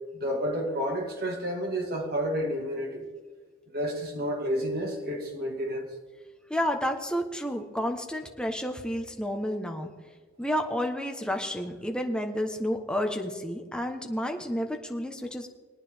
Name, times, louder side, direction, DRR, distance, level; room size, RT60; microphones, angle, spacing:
voice 1, 0.1-3.1 3.7-5.9, equal, 45° right, 2.1 m, -30 dB
voice 2, 6.5-9.9 10.4-15.5, equal, 5° left, 1.0 m, -30 dB
22.5 x 9.4 x 3.5 m
head